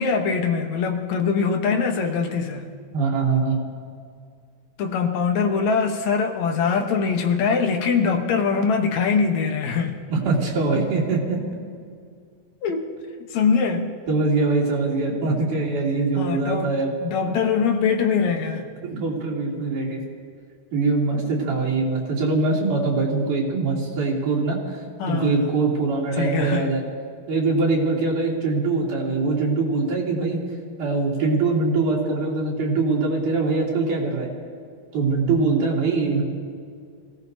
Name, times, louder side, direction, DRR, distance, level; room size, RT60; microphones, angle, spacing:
voice 1, 0.0-2.7 4.8-10.0 12.6-12.9 13.3-13.9 16.2-16.7 17.0-18.7 25.0-25.5 26.1-26.7, left 5 dB, 70° left, 4 dB, 2.3 m, -22 dB
voice 2, 2.9-3.6 10.1-11.4 14.1-16.9 17.3-17.4 18.8-20.0 20.7-24.8 25.1-26.8 27.3-30.4 30.8-34.3 34.9-36.2, right 3 dB, 90° right, -5 dB, 4.5 m, -23 dB
27.5 x 17.5 x 2.7 m, 2.1 s
omnidirectional pair, 3.5 m